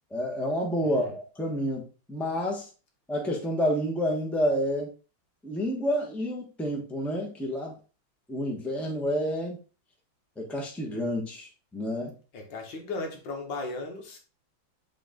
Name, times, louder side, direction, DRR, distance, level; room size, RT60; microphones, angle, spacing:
voice 1, 0.1-1.8 2.1-2.7 3.1-4.9 5.4-7.7 8.3-9.6 10.4-12.1, equal, ahead, 1.1 m, -29 dB
voice 2, 0.8-1.2 12.3-14.2, left 3 dB, 65° left, 1.9 m, -36 dB
7.3 x 3.7 x 3.9 m
omnidirectional pair, 2.2 m